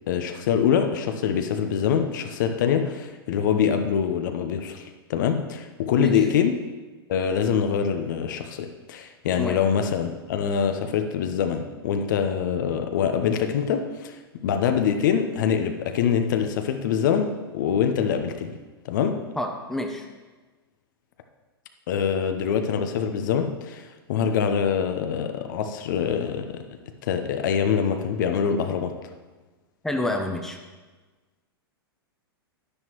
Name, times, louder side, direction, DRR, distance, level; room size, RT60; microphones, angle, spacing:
voice 1, 0.1-6.6 7.1-18.5 18.8-19.2 21.9-23.8 24.1-26.6 27.0-29.0, left 7 dB, 50° left, 6 dB, 0.9 m, -24 dB
voice 2, 19.4-20.1 29.8-30.6, left 1 dB, 5° left, 3 dB, 0.9 m, -28 dB
10.5 x 9.8 x 3.1 m, 1.3 s
figure-of-eight pair, 100°, 13 cm